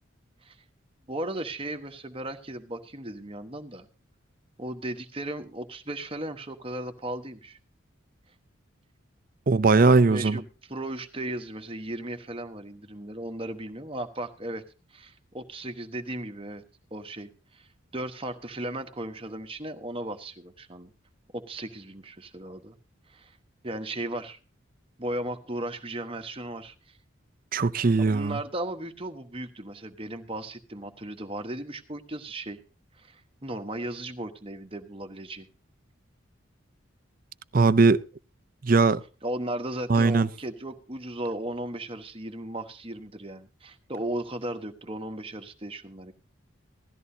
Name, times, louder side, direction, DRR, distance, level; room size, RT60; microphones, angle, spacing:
voice 1, 1.1-3.9 4.6-7.6 10.1-14.6 14.9-16.6 16.9-17.7 17.9-20.9 21.3-22.8 23.1-23.4 23.6-24.4 25.0-27.0 28.0-32.6 33.0-35.5 39.2-46.1, right 1 dB, 25° right, 1.2 m, -36 dB
voice 2, 9.5-10.4 27.5-28.4 37.5-38.0 38.6-39.0 39.9-40.3, right 3 dB, 45° right, 0.5 m, -20 dB
17.5 x 13.5 x 2.8 m
head